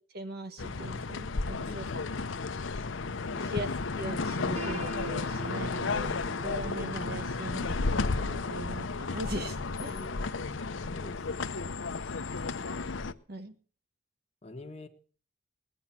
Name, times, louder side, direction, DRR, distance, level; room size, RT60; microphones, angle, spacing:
voice 1, 0.1-2.1 3.5-3.7 4.0-10.0 13.3-13.5, right 1 dB, 55° right, 9 dB, 1.6 m, -40 dB
sound 1, 0.6-13.1, left 4 dB, 85° left, 0.8 m, -33 dB
Piano, 4.6-10.4, right 5 dB, 35° right, 3.3 m, -46 dB
voice 2, 9.9-10.3 10.9-11.4 14.4-14.9, left 2 dB, 35° left, 3 dB, 1.7 m, -45 dB
19.5 x 9.4 x 5.9 m, 0.42 s
head